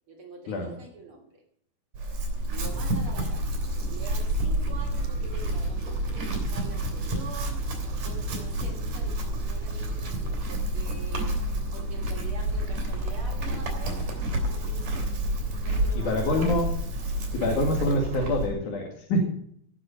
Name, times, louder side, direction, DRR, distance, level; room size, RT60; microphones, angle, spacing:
voice 1, 0.1-1.4 2.5-7.7 8.0-11.4 11.7-14.0 14.5-15.1 15.5-16.5 17.3-17.5, right 3 dB, 45° right, 0 dB, 3.6 m, -45 dB
Chewing mastication / Livestock farm animals working animals, 1.9-18.5, right 1 dB, 75° right, 4.7 m, -29 dB
voice 2, 16.0-16.7 17.3-19.2, left 1 dB, 75° left, -1 dB, 3.7 m, -26 dB
18.0 x 8.8 x 5.5 m, 0.69 s
omnidirectional pair, 3.6 m